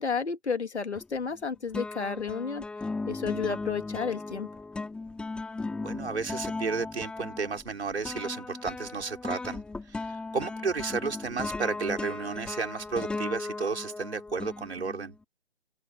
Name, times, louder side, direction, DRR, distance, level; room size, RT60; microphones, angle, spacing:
voice 1, 0.0-2.6 3.1-4.5, left 5 dB, 75° left, 2.3 m, -31 dB
sound 1, 1.0-1.4 1.7-15.2, left 3 dB, 5° left, 3.1 m, -37 dB
voice 2, 5.8-9.6 9.9-15.1, right 4 dB, 70° right, 5.9 m, -32 dB
open air
figure-of-eight pair, 155°, 34 cm